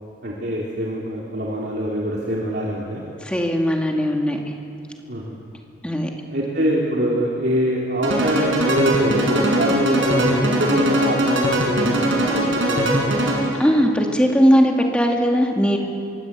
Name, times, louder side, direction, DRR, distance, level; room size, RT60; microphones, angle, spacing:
voice 1, 0.2-3.0 5.1-5.3 6.3-11.9 12.2-12.4 12.7-13.2, right 1 dB, 60° right, -4 dB, 3.3 m, -23 dB
voice 2, 3.2-4.4 5.8-6.1 13.6-15.8, equal, 5° left, 1 dB, 2.2 m, -18 dB
sound 1, 8.0-13.7, right 1 dB, 85° right, 6.1 m, -21 dB
24.5 x 23.0 x 8.3 m, 2.8 s
head